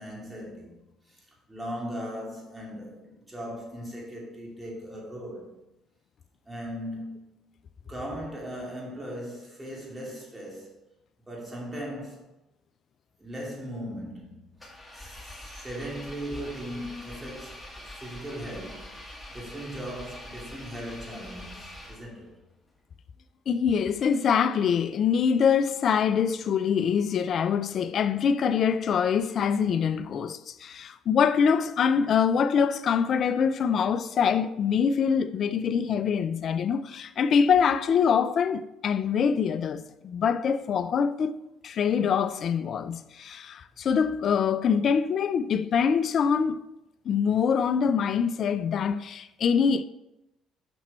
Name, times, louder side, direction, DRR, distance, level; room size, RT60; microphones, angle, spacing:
voice 1, 0.0-5.5 6.4-7.3 7.9-10.7 11.3-12.3 13.2-14.6 14.9-22.4, equal, 15° right, 2.8 m, -38 dB
Engine, 14.6-22.3, left 1 dB, 15° left, 2.0 m, -44 dB
voice 2, 23.5-46.6 47.1-49.8, left 7 dB, 55° left, 0.4 m, -24 dB
6.1 x 5.9 x 4.2 m
hypercardioid pair, 60°, 0 cm